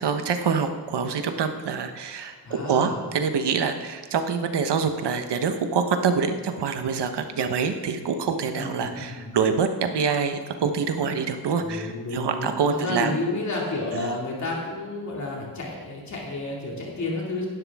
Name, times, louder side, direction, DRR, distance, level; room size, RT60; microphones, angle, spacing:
voice 1, 0.0-13.1 13.9-14.1, right 6 dB, 85° right, 7 dB, 1.1 m, -26 dB
voice 2, 2.4-3.0 8.6-9.3 11.6-17.5, left 2 dB, 45° left, -3 dB, 2.5 m, -31 dB
16.5 x 11.5 x 3.6 m, 1.5 s
wide cardioid pair, 180°, 40 cm